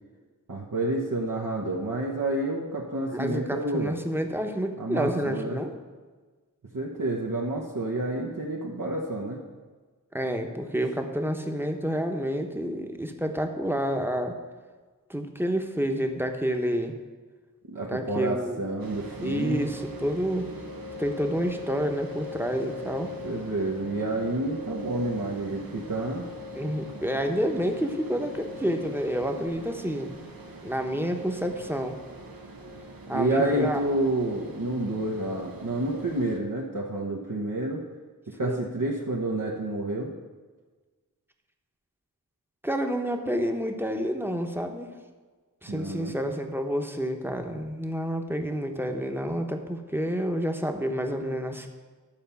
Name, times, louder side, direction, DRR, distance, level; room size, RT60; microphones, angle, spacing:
voice 1, 0.5-3.9 4.8-5.6 6.7-9.4 10.7-10.8 17.7-19.6 23.0-26.2 33.1-37.8 38.3-40.1 45.7-46.1, right 2 dB, 65° right, -3 dB, 1.1 m, -29 dB
voice 2, 3.1-5.7 10.1-14.4 15.1-16.9 17.9-18.6 19.2-20.5 21.0-23.1 26.5-30.2 30.6-31.9 33.1-33.8 38.4-38.6 42.6-44.9 45.6-51.7, equal, 5° right, 4 dB, 1.0 m, -29 dB
sound 1, 18.8-36.4, equal, 85° right, 1.1 m, -41 dB
12.0 x 4.4 x 7.0 m, 1.4 s
wide cardioid pair, 45°, 34 cm